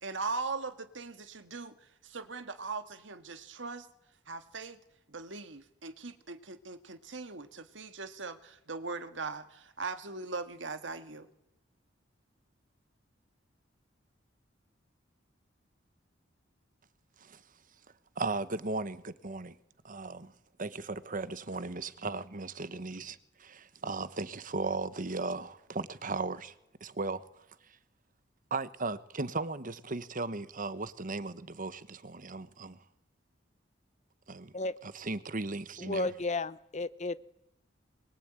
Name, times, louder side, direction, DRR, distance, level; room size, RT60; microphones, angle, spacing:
voice 1, 0.0-3.9 4.3-4.8 5.1-11.3, right 4 dB, 75° right, 1.8 m, -40 dB
voice 2, 18.2-19.6 19.8-20.3 20.6-26.5 26.8-27.2 28.5-32.8 34.3-34.5 34.8-36.1, right 3 dB, 45° right, 1.2 m, -36 dB
voice 3, 35.8-37.2, left 3 dB, 40° left, 0.9 m, -33 dB
23.5 x 22.0 x 9.0 m
head